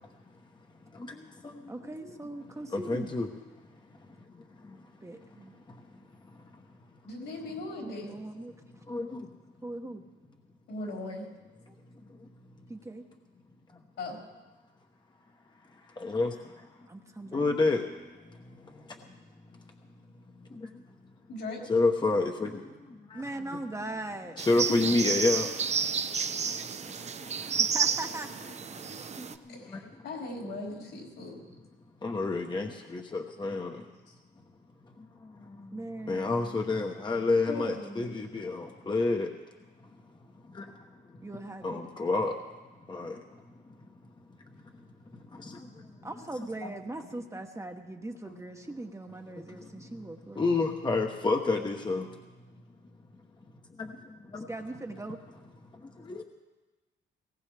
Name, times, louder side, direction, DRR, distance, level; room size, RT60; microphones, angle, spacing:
voice 1, 0.9-1.7 2.7-3.3 3.9-4.0 4.3-4.8 5.2-5.3 5.7-5.9 6.3-6.6 8.9-9.3 10.8-11.2 12.1-12.3 15.7-16.7 17.3-19.2 19.5-19.8 20.4-20.8 21.7-23.2 24.4-25.5 26.2-27.1 27.4-27.6 28.9-29.8 32.0-33.9 35.0-39.3 40.5-41.2 41.6-42.4 42.9-43.2 43.5-43.6 45.1-46.1 46.4-46.7 49.5-49.8 50.3-52.2 53.8-54.5 55.7-56.2, left 3 dB, 20° left, 3 dB, 1.0 m, -31 dB
voice 2, 1.7-3.1 5.0-5.6 7.8-8.6 9.6-10.0 11.7-11.8 12.7-13.0 16.9-17.4 23.1-24.4 27.6-28.3 29.2-29.3 35.7-36.6 41.2-41.9 46.0-50.4 54.5-55.2, right 2 dB, 15° right, 4 dB, 1.0 m, -40 dB
voice 3, 7.0-8.1 10.7-11.3 14.0-14.2 21.3-21.6 24.6-24.9 27.2-27.4 28.7-28.8 29.5-31.3 34.1-34.2 36.1-36.2 37.5-38.1, left 2 dB, 75° left, -3 dB, 4.9 m, -39 dB
sound 1, 24.4-29.4, right 6 dB, 35° right, 0.6 m, -31 dB
19.0 x 17.0 x 3.4 m, 1.2 s
cardioid pair, 90°, 20 cm